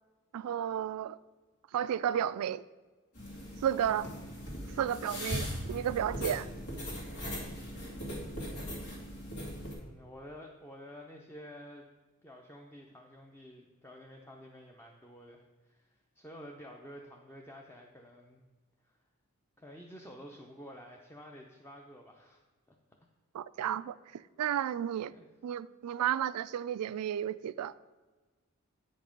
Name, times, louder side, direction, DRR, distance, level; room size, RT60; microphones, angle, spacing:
voice 1, 0.3-1.2 1.7-2.6 3.6-4.1 4.8-6.5 23.3-25.1 25.4-27.7, right 10 dB, 85° right, 0.3 m, -32 dB
sound 1, 3.2-9.7, equal, 85° left, 2.4 m, -39 dB
voice 2, 4.0-4.5 7.3-7.7 9.7-11.9 12.2-18.4 18.8-19.0 19.6-22.8 25.1-25.3, equal, 10° left, 0.6 m, -51 dB
8.6 x 5.3 x 5.1 m
head